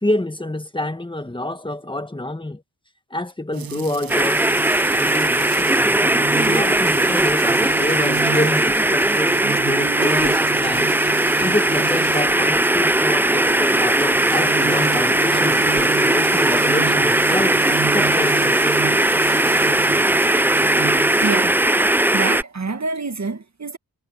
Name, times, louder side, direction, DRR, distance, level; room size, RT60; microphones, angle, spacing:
voice 1, 0.0-2.6 3.1-4.4 4.9-10.9 11.4-18.7, left 1 dB, 15° left, 1.6 m, -27 dB
sound 1, 3.5-21.3, right 7 dB, 65° right, 0.8 m, -32 dB
sound 2, 4.1-22.4, right 1 dB, 5° right, 0.4 m, -18 dB
voice 2, 21.2-21.6 22.1-23.8, right 3 dB, 45° right, 1.8 m, -26 dB
wide cardioid pair, 90°, 38 cm